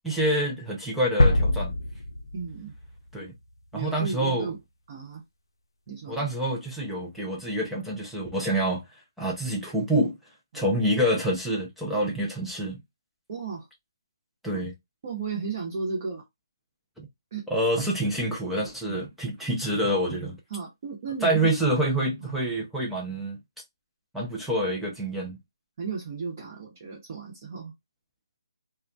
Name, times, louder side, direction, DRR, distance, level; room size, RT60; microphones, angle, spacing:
voice 1, 0.0-1.8 3.1-3.3 3.7-4.5 6.1-8.8 9.2-10.1 10.5-12.8 14.4-14.7 17.0-17.1 17.5-20.4 21.2-23.4 24.1-25.4, right 1 dB, ahead, 0.4 m, -27 dB
sound 1, 1.2-3.1, left 1 dB, 90° left, 0.4 m, -23 dB
voice 2, 2.3-2.7 3.7-4.6 4.9-5.2 5.9-6.3 10.5-10.7 13.3-13.7 14.5-14.7 15.0-16.2 17.3-17.4 18.8-19.0 20.5-21.5 22.2-22.3 25.8-27.7, right 5 dB, 40° right, 0.9 m, -34 dB
2.3 x 2.2 x 2.6 m
hypercardioid pair, 160°, 2 cm